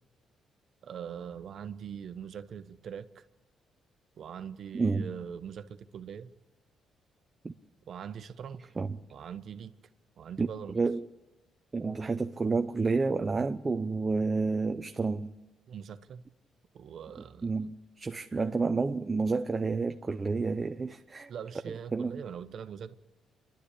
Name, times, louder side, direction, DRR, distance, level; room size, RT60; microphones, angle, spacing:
voice 1, 0.8-3.2 4.2-6.3 7.9-8.7 9.1-9.7 10.2-10.8 15.7-16.2 16.7-17.5 21.3-22.9, right 8 dB, 60° right, 1.1 m, -42 dB
voice 2, 4.7-5.1 7.4-7.5 8.8-9.0 10.4-10.5 10.7-11.0 11.7-15.3 17.4-21.3 21.7-22.2, right 4 dB, 25° right, 0.7 m, -30 dB
28.0 x 11.5 x 8.4 m
cardioid pair, 90°, 0 cm